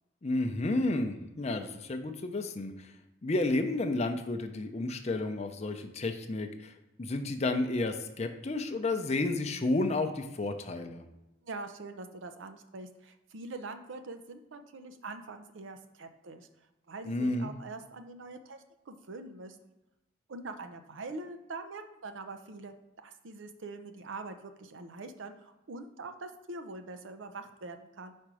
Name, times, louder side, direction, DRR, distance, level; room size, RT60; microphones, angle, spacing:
voice 1, 0.2-2.9 3.2-6.7 7.0-11.0 17.1-17.5, left 2 dB, 35° left, 6 dB, 0.5 m, -31 dB
voice 2, 11.4-16.5 16.9-19.6 20.3-28.1, right 3 dB, 75° right, 8 dB, 0.6 m, -44 dB
5.0 x 4.3 x 4.8 m, 0.95 s
head